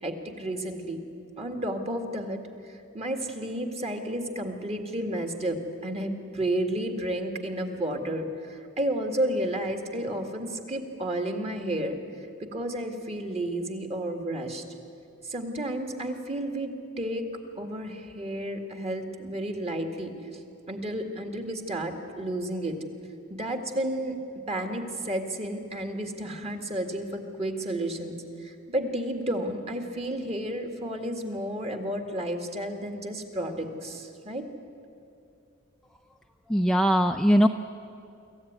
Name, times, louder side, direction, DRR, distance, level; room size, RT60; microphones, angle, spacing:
voice 1, 0.0-1.0 1.4-2.4 2.9-12.0 12.4-14.6 15.2-17.3 17.6-20.4 20.7-22.8 23.3-24.2 24.5-34.5, right 1 dB, 30° right, 5 dB, 2.1 m, -32 dB
voice 2, 36.5-37.5, equal, 5° left, 4 dB, 0.5 m, -20 dB
25.0 x 15.0 x 9.6 m, 2.6 s
head